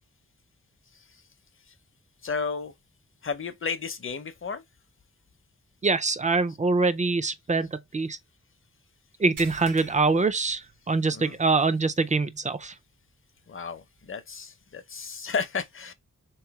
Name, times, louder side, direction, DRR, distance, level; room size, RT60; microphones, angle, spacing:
voice 1, 0.9-1.2 1.7-1.8 2.2-2.7 3.2-4.6 6.5-6.6 11.1-11.4 13.5-15.9, left 5 dB, 40° left, 0.7 m, -33 dB
voice 2, 5.8-8.2 9.2-12.7, right 3 dB, 25° right, 0.4 m, -24 dB
sound 1, 9.4-11.2 11.6-11.8 12.3-12.4 14.0-14.1, right 4 dB, 85° right, 1.3 m, -46 dB
3.5 x 3.1 x 4.6 m
wide cardioid pair, 140°, 31 cm